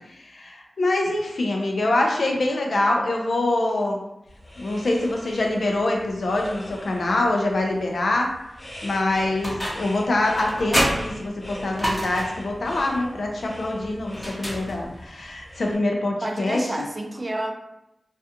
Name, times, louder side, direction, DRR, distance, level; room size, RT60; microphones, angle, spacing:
voice 1, 0.1-4.0 4.6-8.3 8.8-16.9, left 2 dB, 75° left, 1 dB, 0.4 m, -24 dB
sound 1, 4.3-15.8, left 1 dB, 50° left, 0.9 m, -43 dB
sound 2, 9.4-10.0 10.4-12.5 14.1-15.1, equal, 15° left, 0.7 m, -27 dB
voice 2, 16.2-17.5, right 1 dB, 35° right, 2 dB, 0.4 m, -29 dB
2.4 x 2.3 x 2.7 m, 0.87 s
cardioid pair, 55°, 0 cm